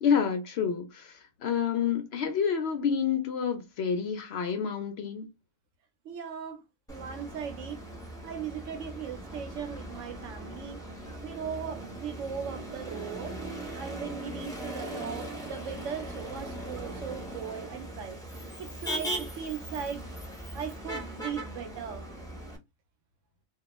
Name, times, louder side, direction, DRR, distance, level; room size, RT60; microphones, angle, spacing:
voice 1, 0.0-5.3, left 7 dB, 65° left, 0.7 m, -28 dB
voice 2, 6.0-6.6 6.9-7.8 8.2-10.8 11.2-13.4 13.8-18.2 18.6-20.1 20.5-22.0, right 7 dB, 70° right, 0.9 m, -38 dB
Motor vehicle (road), 6.9-22.6, right 1 dB, 5° left, 0.5 m, -39 dB
2.3 x 2.2 x 2.9 m
omnidirectional pair, 1.4 m